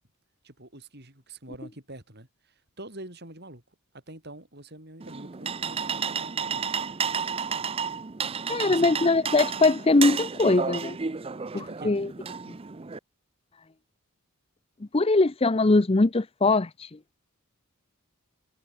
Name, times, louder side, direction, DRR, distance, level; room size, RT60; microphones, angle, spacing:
voice 1, 0.4-3.6 3.9-6.6 8.7-8.9 11.5-11.9, right 1 dB, 45° right, 7.3 m, -45 dB
sound 1, 5.0-13.0, right 6 dB, 25° right, 0.5 m, -32 dB
voice 2, 8.5-11.0 11.5-12.1 14.9-17.0, left 3 dB, 25° left, 0.6 m, -22 dB
head